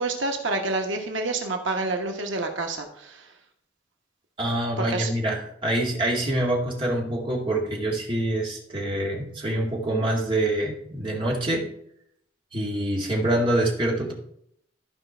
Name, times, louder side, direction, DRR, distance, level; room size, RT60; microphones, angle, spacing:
voice 1, 0.0-3.3 4.8-5.1, right 2 dB, 85° right, 3 dB, 1.3 m, -28 dB
voice 2, 4.4-11.7 12.5-14.1, right 1 dB, 25° right, -2 dB, 2.2 m, -25 dB
13.0 x 5.1 x 4.5 m, 0.71 s
head